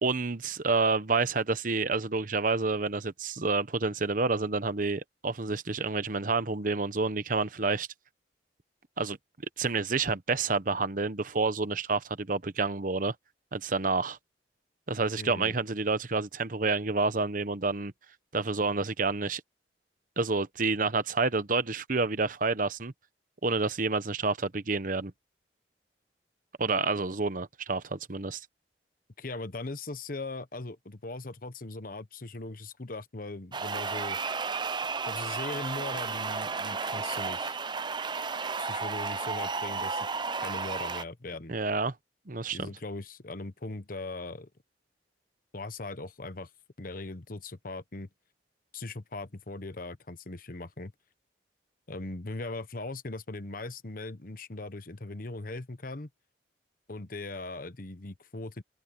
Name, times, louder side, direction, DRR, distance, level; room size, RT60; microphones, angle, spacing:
voice 1, 0.0-7.9 9.0-9.2 9.6-13.1 13.5-14.2 14.9-17.9 18.3-19.4 20.2-22.9 23.4-25.1 26.6-28.4 41.5-41.9 42.3-42.7, right 3 dB, 50° right, 1.0 m, -29 dB
voice 2, 15.2-15.5 29.2-34.2 35.1-37.6 38.6-40.1 40.4-41.6 42.5-44.5 45.5-46.5 46.8-48.1 48.7-50.9 51.9-56.1 56.9-58.6, left 2 dB, 55° left, 1.1 m, -39 dB
sound 1, 33.5-41.0, right 4 dB, 25° right, 0.6 m, -33 dB
head